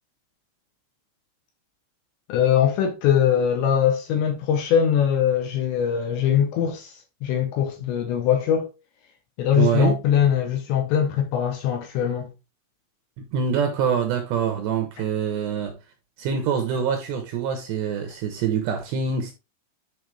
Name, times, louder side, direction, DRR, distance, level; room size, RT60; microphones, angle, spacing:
voice 1, 2.3-8.7 9.4-12.3, left 9 dB, 80° left, 2.9 m, -22 dB
voice 2, 9.5-10.0 13.2-15.8 16.2-19.3, right 7 dB, 75° right, 2.6 m, -25 dB
10.0 x 4.1 x 3.4 m
omnidirectional pair, 5.9 m